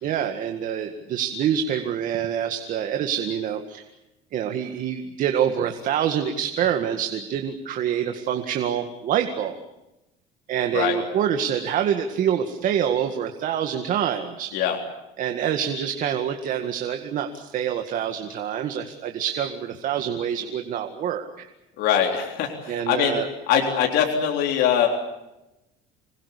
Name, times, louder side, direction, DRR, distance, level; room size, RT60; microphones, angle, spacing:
voice 1, 0.0-3.8 4.3-9.6 10.5-14.5 15.2-21.5 22.7-23.3, right 9 dB, 45° right, 5 dB, 2.0 m, -26 dB
voice 2, 21.8-24.9, left 8 dB, 65° left, 1 dB, 3.8 m, -22 dB
26.5 x 21.0 x 8.5 m, 0.94 s
cardioid pair, 150°, 18 cm